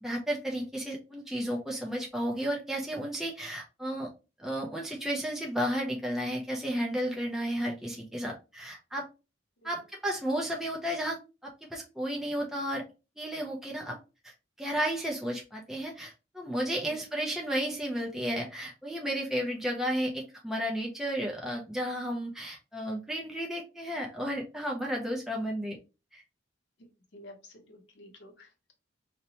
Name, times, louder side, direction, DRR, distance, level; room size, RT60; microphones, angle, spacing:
voice 1, 0.0-4.1 4.4-9.1 9.6-12.8 13.2-14.0 14.2-25.8 26.1-26.2, equal, ahead, -2 dB, 0.4 m, -33 dB
voice 2, 27.1-28.7, left 1 dB, 70° left, 3 dB, 0.7 m, -51 dB
2.8 x 2.1 x 2.7 m, 0.29 s
head